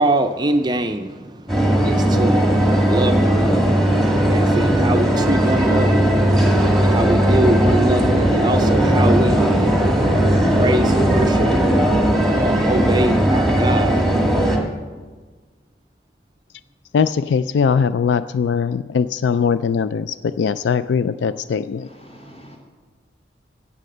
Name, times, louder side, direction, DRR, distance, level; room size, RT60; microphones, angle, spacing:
voice 1, 0.0-2.5 2.9-3.6 4.3-6.1 6.8-9.5 10.0-10.3 10.6-11.5 12.3-14.5, right 1 dB, 25° right, 6 dB, 0.5 m, -23 dB
sound 1, 1.5-14.6, right 1 dB, ahead, 1.9 m, -17 dB
voice 2, 16.9-21.9, left 6 dB, 75° left, 14 dB, 0.3 m, -20 dB
voice 3, 21.8-22.6, equal, 30° left, 1 dB, 2.7 m, -44 dB
16.0 x 7.3 x 6.6 m, 1.4 s
head